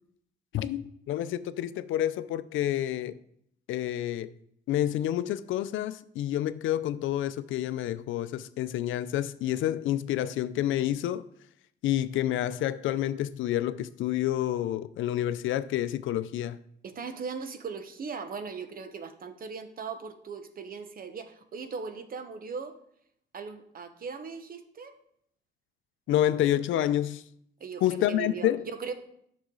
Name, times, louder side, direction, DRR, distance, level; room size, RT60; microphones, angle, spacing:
voice 1, 0.5-3.2 3.7-4.3 4.7-11.2 11.8-16.6 26.1-27.2 27.8-28.6, left 12 dB, 80° left, 0.5 m, -28 dB
voice 2, 16.8-22.8 23.3-25.0 27.6-28.9, right 5 dB, 45° right, 1.0 m, -39 dB
9.9 x 6.5 x 3.9 m
cardioid pair, 90°, 20 cm